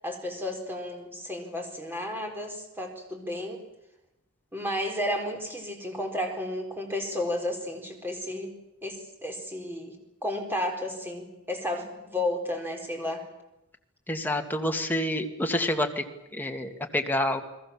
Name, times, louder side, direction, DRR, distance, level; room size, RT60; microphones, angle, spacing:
voice 1, 0.0-3.6 4.5-8.5 8.8-10.0 10.2-13.2, left 1 dB, 10° right, 2 dB, 4.4 m, -32 dB
voice 2, 14.1-16.0 16.3-17.4, left 1 dB, 10° left, 3 dB, 2.1 m, -28 dB
30.0 x 21.0 x 7.3 m, 0.91 s
head